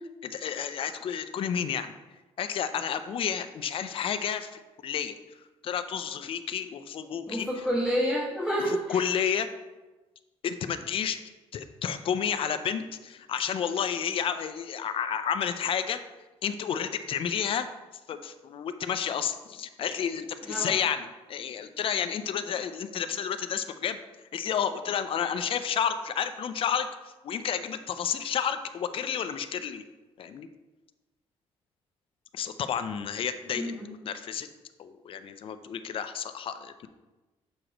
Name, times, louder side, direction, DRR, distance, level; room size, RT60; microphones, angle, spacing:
voice 1, 0.2-1.9 2.4-5.1 5.6-7.5 8.9-9.5 10.4-11.2 11.5-16.0 16.4-17.7 18.1-24.0 24.3-29.8 30.2-30.5 32.3-33.7 34.0-34.5 34.8-36.9, left 8 dB, 55° left, 10 dB, 0.5 m, -31 dB
voice 2, 7.3-9.0 20.4-20.7 33.5-33.9, equal, 10° right, -6 dB, 1.6 m, -29 dB
6.3 x 6.3 x 3.0 m, 1.1 s
cardioid pair, 100°, 11 cm